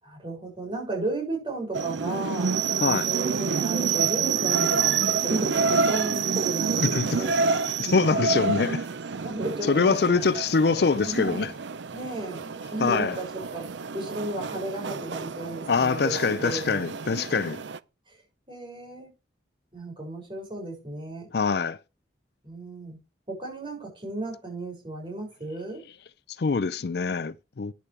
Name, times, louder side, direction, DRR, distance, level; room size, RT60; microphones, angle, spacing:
voice 1, 0.0-2.6 3.0-7.4 9.2-10.4 10.7-11.5 11.9-17.4 18.1-18.2 18.5-19.1 19.7-21.3 22.4-23.0 23.3-25.8, right 2 dB, 25° right, 6.8 m, -34 dB
sound 1, 1.7-17.8, right 5 dB, 80° right, 0.6 m, -28 dB
voice 2, 6.9-7.2 7.8-8.9 9.7-11.5 12.8-13.2 15.7-17.6 21.3-21.8 26.4-27.7, left 4 dB, 60° left, 0.5 m, -24 dB
13.5 x 9.8 x 3.4 m
head